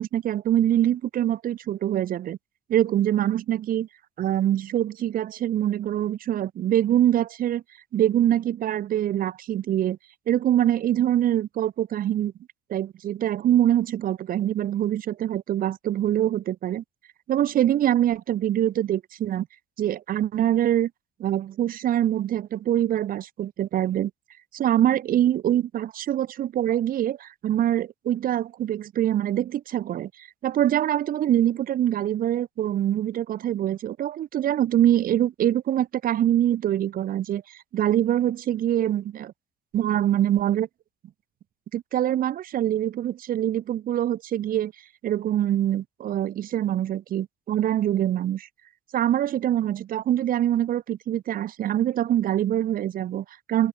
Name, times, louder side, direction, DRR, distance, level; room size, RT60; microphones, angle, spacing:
voice 1, 0.0-2.4 2.7-3.9 4.2-7.6 7.9-10.0 10.3-12.3 12.7-16.8 17.3-19.5 19.8-20.9 21.2-24.1 24.5-37.4 37.7-39.3 39.7-40.7 41.7-44.7 45.0-48.5 48.9-53.7, right 11 dB, 55° right, 1.4 m, -24 dB
cardioid pair, 110°, 17 cm